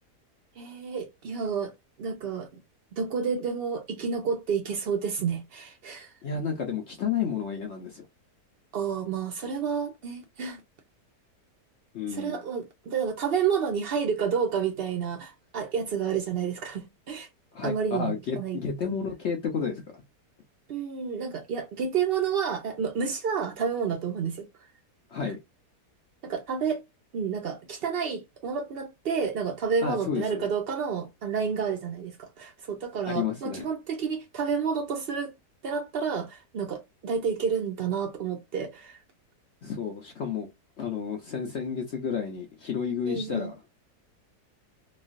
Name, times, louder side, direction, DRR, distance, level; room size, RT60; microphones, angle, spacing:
voice 1, 0.6-1.7 2.0-2.5 2.9-6.1 8.7-10.6 12.1-17.3 17.6-18.9 20.7-24.5 25.2-25.3 26.2-26.8 27.1-35.3 35.6-39.0 43.1-43.5, right 6 dB, 90° right, 0.5 m, -30 dB
voice 2, 6.2-8.0 11.9-12.4 17.5-20.0 25.1-25.4 29.8-30.5 33.1-33.7 39.6-40.5 40.8-43.5, left 6 dB, 70° left, 0.6 m, -31 dB
3.1 x 2.3 x 2.4 m
omnidirectional pair, 1.8 m